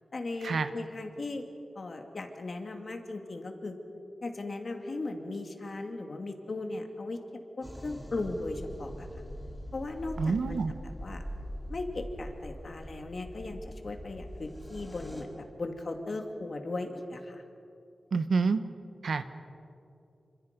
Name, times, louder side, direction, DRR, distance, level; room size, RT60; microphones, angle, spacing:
voice 1, 0.1-1.4 1.7-3.8 4.2-7.2 7.6-9.1 9.7-10.6 11.0-11.2 11.7-17.4, left 2 dB, 45° left, 4 dB, 2.5 m, -37 dB
sound 1, 7.6-15.2, equal, ahead, 3.5 m, -43 dB
voice 2, 10.2-10.7 18.1-18.6 19.0-19.2, right 4 dB, 80° right, 10 dB, 1.2 m, -27 dB
28.0 x 26.5 x 5.3 m, 2.7 s
wide cardioid pair, 145°, 0 cm